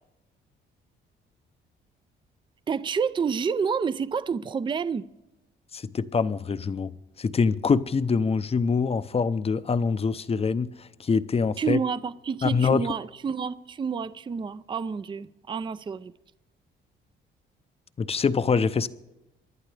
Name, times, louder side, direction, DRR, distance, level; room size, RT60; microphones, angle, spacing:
voice 1, 2.7-5.1 11.6-16.1, right 6 dB, 25° right, 0.4 m, -29 dB
voice 2, 5.7-6.9 7.2-10.7 11.0-11.8 12.4-12.8 18.0-18.9, left 5 dB, 30° left, 0.6 m, -24 dB
25.5 x 11.0 x 3.3 m
cardioid pair, 90°, 20 cm